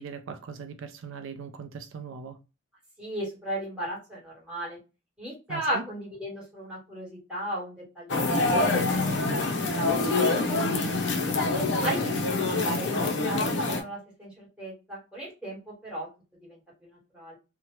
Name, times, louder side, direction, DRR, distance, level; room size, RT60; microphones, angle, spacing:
voice 1, 0.0-2.4 5.5-5.8 11.7-12.2, right 5 dB, 85° right, 0.4 m, -39 dB
voice 2, 3.0-4.8 5.2-8.4 8.7-10.3 10.7-10.8 11.3-11.4 11.8-12.0 12.7-16.1 16.4-17.4, right 1 dB, 5° right, 1.4 m, -36 dB
sound 1, 8.1-13.8, left 3 dB, 60° left, 0.6 m, -25 dB
2.8 x 2.1 x 3.0 m
head